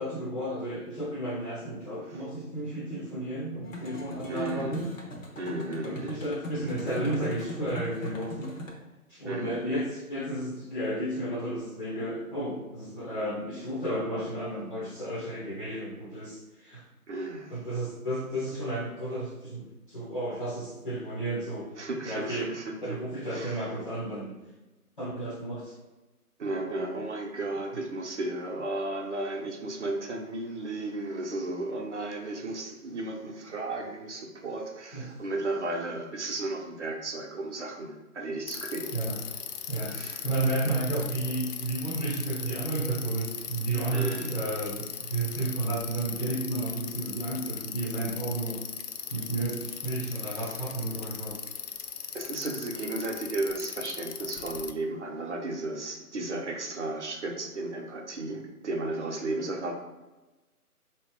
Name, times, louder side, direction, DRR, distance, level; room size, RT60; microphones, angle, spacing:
voice 1, 0.0-4.9 5.8-8.6 9.1-16.8 17.5-21.7 22.0-22.5 22.8-24.3 25.0-25.8 34.9-35.1 38.9-39.2 39.7-40.0 40.2-48.6 49.1-51.4, right 1 dB, 35° left, -7 dB, 0.7 m, -32 dB
sound 1, 3.6-8.7, left 1 dB, 60° left, 1.0 m, -41 dB
voice 2, 4.3-4.8 5.3-6.2 9.2-9.6 17.1-17.5 21.8-23.0 23.2-23.6 26.4-39.0 39.9-40.2 43.9-44.4 50.1-50.6 50.9-51.1 52.1-59.7, right 2 dB, 50° right, 2 dB, 0.7 m, -34 dB
Bicycle, 38.5-54.7, left 7 dB, 90° left, 0.5 m, -39 dB
3.9 x 2.9 x 3.5 m, 1.1 s
figure-of-eight pair, 160°, 45 cm